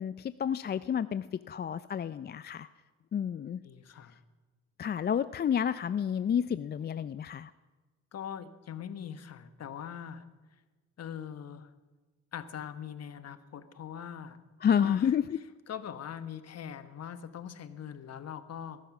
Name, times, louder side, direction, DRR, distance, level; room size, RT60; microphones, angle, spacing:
voice 1, 0.0-2.7 3.1-3.6 4.8-7.5 14.6-15.4, left 8 dB, 35° left, 14 dB, 0.4 m, -30 dB
voice 2, 3.6-4.2 8.1-10.3 11.0-11.7 12.3-14.4 14.8-15.1 15.7-18.8, left 8 dB, 55° left, 11 dB, 1.2 m, -42 dB
20.0 x 11.5 x 6.0 m, 1.2 s
cardioid pair, 90°, 30 cm